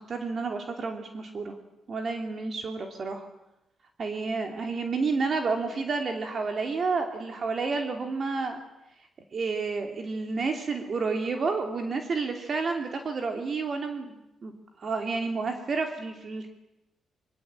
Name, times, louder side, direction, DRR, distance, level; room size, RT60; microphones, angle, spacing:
voice 1, 0.0-1.5 1.9-3.3 4.0-8.6 9.3-14.5 14.8-16.5, right 4 dB, 45° right, 4 dB, 3.0 m, -30 dB
25.5 x 24.0 x 9.0 m, 0.93 s
cardioid pair, 115°, 0 cm